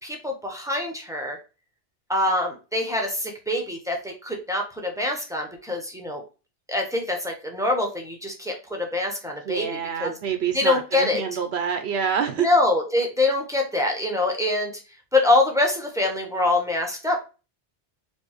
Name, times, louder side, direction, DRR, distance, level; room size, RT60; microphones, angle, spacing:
voice 1, 0.0-1.4 2.1-6.2 6.7-10.1 10.5-11.2 12.4-14.7 15.1-17.2, left 2 dB, 5° right, 1 dB, 0.7 m, -24 dB
voice 2, 9.5-12.5, right 7 dB, 70° right, 7 dB, 0.8 m, -27 dB
4.5 x 2.6 x 2.9 m, 0.32 s
omnidirectional pair, 1.1 m